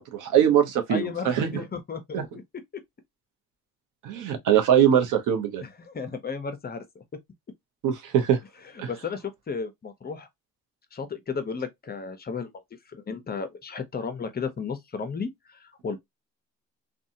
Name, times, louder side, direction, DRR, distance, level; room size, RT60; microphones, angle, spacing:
voice 1, 0.0-1.6 2.1-2.3 4.0-5.7 7.8-8.4 8.8-8.9, right 9 dB, 85° right, 0.8 m, -22 dB
voice 2, 0.9-2.4 2.7-2.8 5.6-7.0 8.7-10.3 10.9-12.5 12.9-16.0, left 5 dB, 30° left, 0.7 m, -34 dB
2.7 x 2.3 x 2.6 m
cardioid pair, 90°, 30 cm